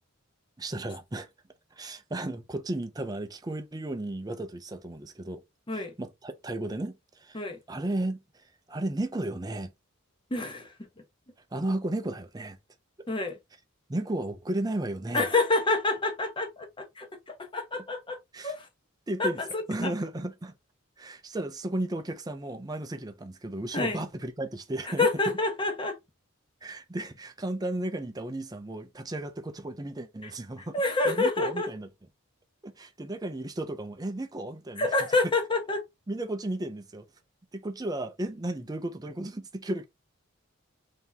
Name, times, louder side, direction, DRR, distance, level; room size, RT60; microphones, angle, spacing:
voice 1, 0.6-1.3 1.7-5.4 5.7-9.7 11.5-12.6 13.9-15.3 17.7-17.8 18.3-18.5 19.1-19.4 19.7-20.5 21.0-25.1 26.6-31.9 32.6-34.9 36.1-37.1 37.5-39.8, right 1 dB, 20° right, 0.5 m, -34 dB
voice 2, 10.3-10.9 13.1-13.4 15.1-18.2 18.4-18.7 19.2-19.9 23.7-24.0 24.8-26.0 30.2-30.3 30.7-31.7 34.8-35.8, left 3 dB, 25° left, 0.8 m, -28 dB
3.4 x 2.8 x 3.8 m
head